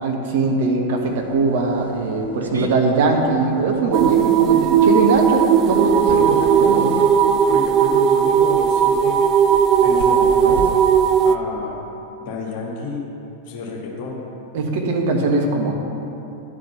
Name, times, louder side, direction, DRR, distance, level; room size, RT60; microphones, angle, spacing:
voice 1, 0.0-6.2 6.6-7.0 14.5-15.7, right 3 dB, 50° right, 1 dB, 1.2 m, -21 dB
sound 1, 1.1-10.7, right 3 dB, 75° right, 0.8 m, -37 dB
sound 2, 3.9-11.4, right 7 dB, 35° right, 0.4 m, -16 dB
voice 2, 6.1-6.4 7.5-9.2 9.8-10.7 11.2-11.8 12.2-13.1 13.5-14.2, left 4 dB, 45° left, -2 dB, 2.0 m, -29 dB
11.0 x 5.0 x 6.9 m, 3.0 s
figure-of-eight pair, 90°, 0 cm